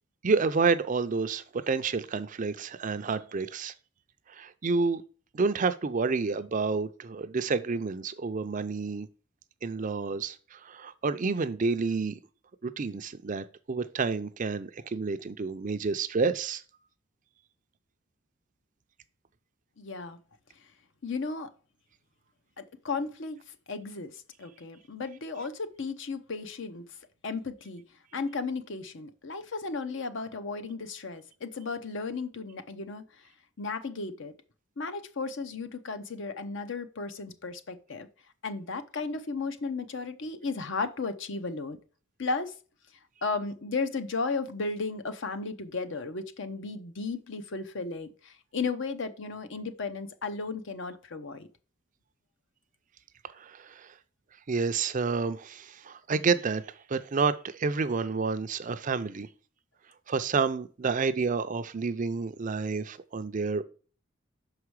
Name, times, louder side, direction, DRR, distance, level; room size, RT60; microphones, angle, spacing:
voice 1, 0.2-3.7 4.3-5.0 5.3-9.1 9.6-12.2 12.6-16.6 53.4-53.9 54.5-56.6 56.9-59.3 60.1-63.6, right 4 dB, 40° right, 0.5 m, -29 dB
voice 2, 19.8-20.2 21.0-21.5 22.6-23.4 23.7-26.8 27.2-27.8 28.1-33.0 33.6-34.3 34.8-38.1 38.4-41.8 42.2-42.5 43.2-51.5, left 4 dB, 60° left, 0.8 m, -34 dB
6.3 x 4.9 x 4.7 m
head